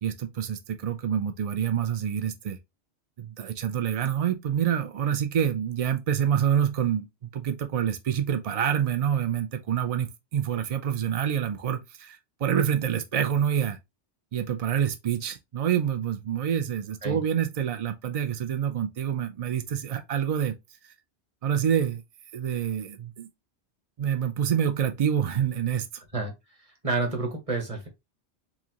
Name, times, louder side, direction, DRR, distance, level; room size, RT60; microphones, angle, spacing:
voice 1, 0.0-2.6 3.2-7.1 7.3-13.8 14.3-20.6 21.4-22.0 22.3-23.3 24.0-26.0, right 9 dB, 70° right, 0.3 m, -27 dB
voice 2, 26.6-27.9, right 3 dB, 30° right, 1.4 m, -29 dB
4.8 x 2.8 x 2.9 m
omnidirectional pair, 1.2 m